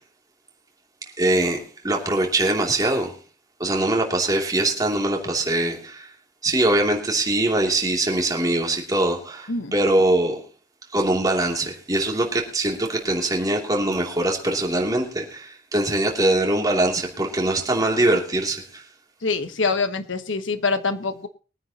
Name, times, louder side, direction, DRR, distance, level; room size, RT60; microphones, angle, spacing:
voice 1, 1.2-3.1 3.6-6.1 6.4-10.4 10.9-18.8, right 1 dB, 20° right, 2.8 m, -22 dB
voice 2, 19.2-21.3, left 4 dB, 85° left, 1.3 m, -25 dB
22.5 x 9.7 x 2.9 m
head